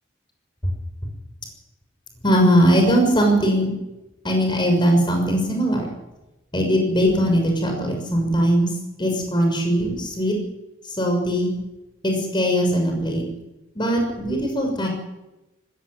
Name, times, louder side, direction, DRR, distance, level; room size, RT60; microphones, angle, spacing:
voice 1, 2.2-3.7 4.2-5.9 6.5-8.7 9.0-10.4 10.8-11.5 12.0-13.2 13.7-14.9, equal, 25° left, 2 dB, 6.4 m, -20 dB
20.0 x 16.5 x 9.9 m, 0.98 s
head